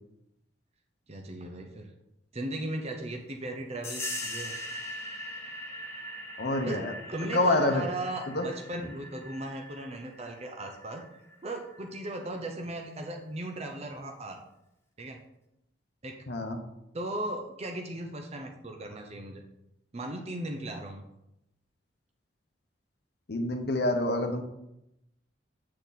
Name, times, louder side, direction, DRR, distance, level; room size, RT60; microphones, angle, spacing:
voice 1, 1.1-1.9 2.3-4.6 6.6-11.0 11.4-14.4 15.0-15.2 16.0-16.2 16.9-19.4 19.9-21.0, right 1 dB, 35° right, 3 dB, 0.8 m, -37 dB
sound 1, 3.8-12.1, left 1 dB, 15° left, 1.3 m, -41 dB
voice 2, 6.4-6.9 7.3-7.8 8.3-8.5 16.3-16.6 23.3-24.4, left 2 dB, 60° left, 6 dB, 1.0 m, -27 dB
8.6 x 6.3 x 4.1 m, 0.86 s
head